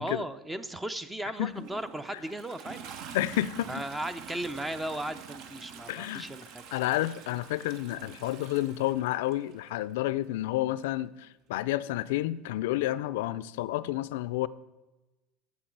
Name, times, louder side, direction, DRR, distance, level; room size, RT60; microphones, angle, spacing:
voice 1, 0.0-2.9 3.7-6.6, right 1 dB, 10° right, 13 dB, 0.5 m, -36 dB
Toilet flush, 1.4-9.8 10.8-10.9, right 7 dB, 60° right, 0.7 m, -47 dB
voice 2, 3.1-3.8 5.9-6.3 6.7-14.5, left 15 dB, 80° left, 17 dB, 0.3 m, -30 dB
8.7 x 7.2 x 4.6 m, 1.1 s
supercardioid pair, 105°, 0 cm